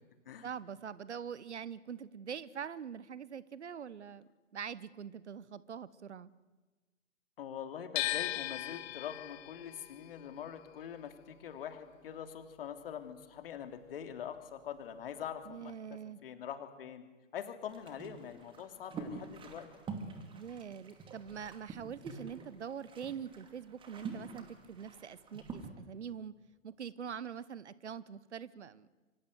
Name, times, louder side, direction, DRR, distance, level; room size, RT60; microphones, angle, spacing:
voice 1, 0.4-6.3 15.4-16.2 20.3-26.3 26.6-28.9, right 7 dB, 60° right, 19 dB, 1.2 m, -44 dB
voice 2, 7.4-15.7 16.2-17.0 17.3-19.7, left 9 dB, 45° left, 8 dB, 3.1 m, -44 dB
sound 1, 8.0-14.0 14.3-15.6, left 14 dB, 25° left, 1.7 m, -40 dB
sound 2, 17.7-25.7, right 4 dB, 15° right, 2.6 m, -47 dB
26.0 x 25.0 x 8.1 m, 1.2 s
figure-of-eight pair, 120°, 38 cm